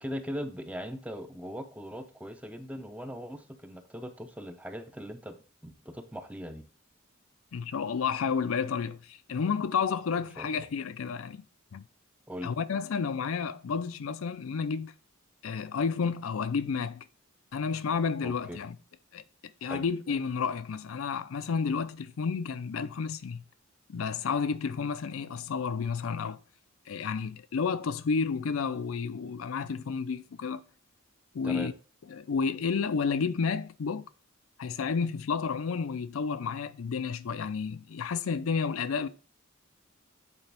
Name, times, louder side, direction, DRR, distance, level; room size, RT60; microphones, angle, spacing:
voice 1, 0.0-5.4 5.6-6.6 10.4-10.7 12.3-12.5 18.2-18.6 19.6-19.8 31.4-31.7, equal, 5° right, 0.5 m, -39 dB
voice 2, 7.5-11.4 11.7-11.8 12.4-14.9 15.4-17.0 17.5-18.8 19.1-19.2 19.6-23.4 23.9-26.4 26.9-30.6 31.3-31.7 32.1-34.0 34.6-39.1, left 5 dB, 85° left, 0.5 m, -31 dB
8.2 x 4.0 x 3.4 m
head